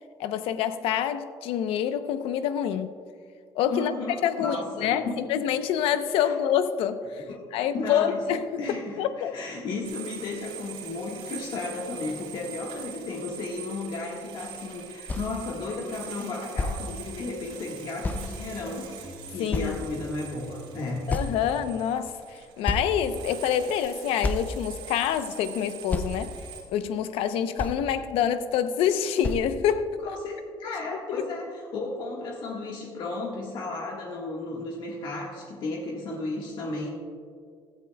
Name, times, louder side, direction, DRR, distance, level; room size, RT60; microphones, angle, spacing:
voice 1, 0.2-2.9 3.5-3.9 4.2-7.2 7.5-8.5 9.0-9.4 19.4-19.8 21.1-26.3 26.7-30.2 31.1-31.2, left 9 dB, 90° left, 10 dB, 0.7 m, -27 dB
voice 2, 3.7-5.2 6.2-6.3 7.2-8.2 8.6-18.9 19.3-21.1 30.0-36.9, left 3 dB, 55° left, -2 dB, 1.5 m, -34 dB
sound 1, 9.8-26.6, right 7 dB, 90° right, 2.9 m, -44 dB
sound 2, 14.8-14.9 15.1-15.3 16.2-16.3 16.6-16.8 18.0-18.3 18.9-19.0 19.5-20.1 21.1-21.7 22.2-22.3 22.7-23.3 23.8-23.9 24.2-24.5 25.4-25.5 25.9-26.1 27.1-27.2 27.6-27.9 28.9-29.0 29.2-29.5, left 2 dB, 15° left, 0.5 m, -29 dB
sound 3, 18.9-22.2, right 1 dB, ahead, 1.1 m, -48 dB
16.5 x 13.0 x 2.3 m, 2.1 s
cardioid pair, 155°, 9 cm